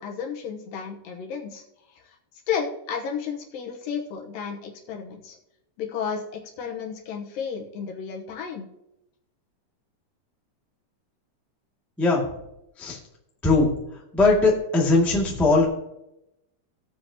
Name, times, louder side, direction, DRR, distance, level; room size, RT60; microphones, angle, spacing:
voice 1, 0.0-1.6 1.9-2.2 2.5-5.4 5.8-8.7, left 7 dB, 70° left, 1 dB, 2.6 m, -32 dB
voice 2, 14.1-15.6, left 3 dB, ahead, -3 dB, 0.7 m, -19 dB
18.0 x 7.7 x 2.9 m, 0.86 s
omnidirectional pair, 4.5 m